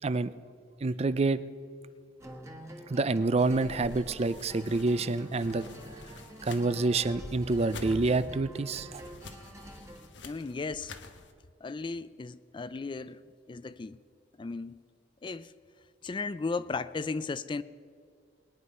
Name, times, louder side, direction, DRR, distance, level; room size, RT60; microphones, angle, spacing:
voice 1, 0.8-1.4 2.9-5.6 6.4-9.0, right 3 dB, 35° right, 15 dB, 0.5 m, -27 dB
sound 1, 2.2-10.1, equal, 15° right, 1.4 m, -47 dB
sound 2, 3.4-11.3, left 3 dB, 85° left, 1.1 m, -50 dB
voice 2, 10.3-11.0 11.6-13.2 13.5-14.0 14.4-14.7 15.2-15.5 16.0-17.6, left 4 dB, 25° left, 15 dB, 0.4 m, -35 dB
21.0 x 9.7 x 5.5 m, 2.3 s
head